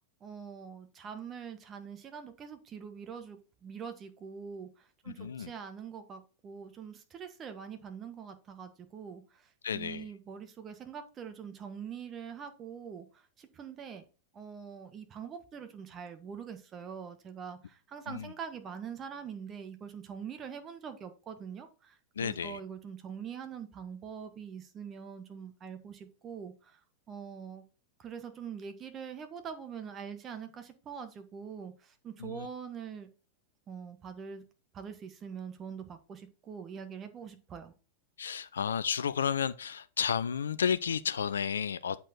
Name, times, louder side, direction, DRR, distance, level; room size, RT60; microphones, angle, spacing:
voice 1, 0.2-14.0 14.3-26.8 27.1-27.6 28.0-33.1 33.7-34.4 34.7-37.7, right 7 dB, 30° right, 1.3 m, -44 dB
voice 2, 5.1-5.5 9.6-10.1 18.1-18.3 22.2-22.6 32.2-32.5 38.2-42.1, left 7 dB, 70° left, 0.4 m, -32 dB
8.0 x 4.3 x 4.3 m
figure-of-eight pair, 90°, 0 cm